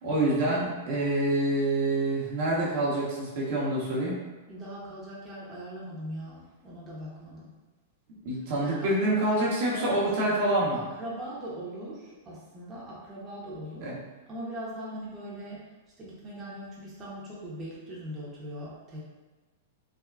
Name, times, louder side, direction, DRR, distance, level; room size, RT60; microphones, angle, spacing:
voice 1, 0.0-4.2 8.2-10.8 13.8-14.0, right 1 dB, 60° right, -5 dB, 0.9 m, -26 dB
voice 2, 4.5-7.6 8.6-9.4 9.7-9.9 10.7-13.9 14.3-15.6 16.0-19.0, right 1 dB, 25° right, -7 dB, 0.8 m, -40 dB
3.5 x 2.3 x 2.3 m, 1.2 s
hypercardioid pair, 120°, 0 cm